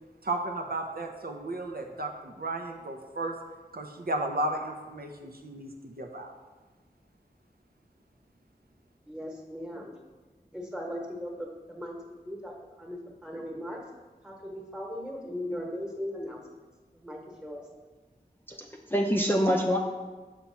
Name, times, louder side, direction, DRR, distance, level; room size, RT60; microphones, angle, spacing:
voice 1, 0.2-3.3 3.7-6.3, right 2 dB, 65° right, 3 dB, 0.6 m, -34 dB
voice 2, 9.0-9.9 10.5-13.8 14.2-16.4 17.0-17.7, equal, 5° right, 0 dB, 1.1 m, -38 dB
voice 3, 18.5-19.8, equal, 10° left, 0 dB, 0.5 m, -26 dB
5.7 x 3.0 x 5.5 m, 1.3 s
wide cardioid pair, 45°, 17 cm